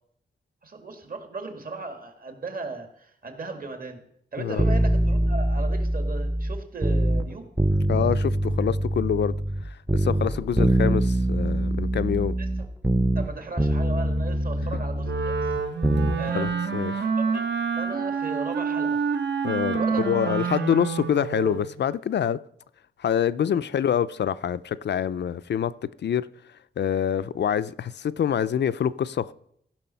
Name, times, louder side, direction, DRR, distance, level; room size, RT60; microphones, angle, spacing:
voice 1, 0.6-4.0 4.3-7.5 12.4-12.5 13.2-15.5 16.2-17.5 17.7-19.0 19.8-20.8 23.5-23.6, right 3 dB, 50° right, 1.9 m, -36 dB
sound 1, 4.6-7.3 7.6-9.6 9.9-13.3 13.6-16.2 16.5-16.6, right 1 dB, 10° right, 0.5 m, -24 dB
voice 2, 7.9-9.4 9.6-12.4 14.7-14.8 16.3-17.0 19.4-22.4 23.0-26.3 26.8-29.3, left 9 dB, 70° left, 0.4 m, -26 dB
Wind instrument woodwind instrument, 15.0-21.7, right 6 dB, 75° right, 1.2 m, -27 dB
15.0 x 6.1 x 5.6 m
wide cardioid pair, 125°, 19 cm